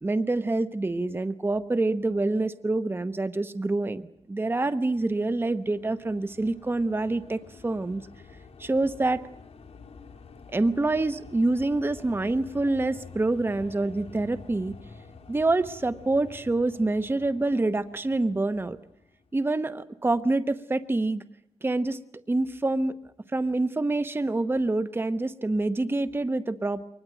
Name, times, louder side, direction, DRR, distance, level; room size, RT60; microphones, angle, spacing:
voice 1, 0.0-8.0 8.6-9.2 10.5-14.8 15.3-18.8 19.3-21.2 21.6-22.0 22.3-23.0 23.3-26.8, right 2 dB, 20° right, 11 dB, 1.0 m, -26 dB
sound 1, 4.9-19.4, left 4 dB, 75° left, 2.9 m, -49 dB
24.0 x 20.0 x 9.0 m, 0.77 s
wide cardioid pair, 100°, 10 cm